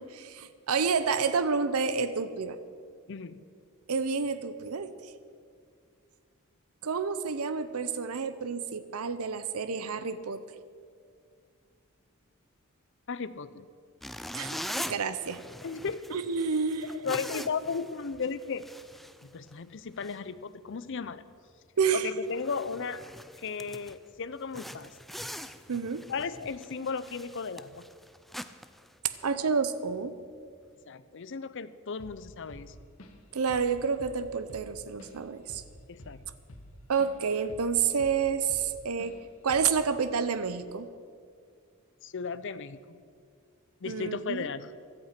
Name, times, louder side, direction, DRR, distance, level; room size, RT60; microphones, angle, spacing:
voice 1, 0.0-2.6 3.9-4.9 6.8-10.4 14.3-14.6 14.9-15.4 16.1-16.9 21.8-22.1 25.7-26.0 29.2-30.1 33.3-35.6 36.9-39.2 39.4-40.9 43.9-44.5, right 5 dB, 80° right, 12 dB, 0.7 m, -29 dB
voice 2, 3.1-3.4 13.1-13.7 15.6-16.2 16.8-18.7 19.2-21.2 21.9-23.0 23.4-25.0 26.1-27.9 30.8-32.8 35.9-36.2 42.0-43.0 43.8-44.7, left 5 dB, 60° left, 14 dB, 0.6 m, -35 dB
sound 1, 14.0-19.7 20.0-20.2 20.7-20.9 21.3-21.4 21.9-22.0 22.2-24.0 24.5-29.5, equal, ahead, 0.4 m, -43 dB
Drum kit / Drum, 32.0-32.2 32.5-33.2 33.5-33.7 34.0-37.2 37.5-38.7 39.0-39.2 39.5-39.8, left 1 dB, 75° left, 1.6 m, -49 dB
16.5 x 11.5 x 5.9 m, 2.2 s
head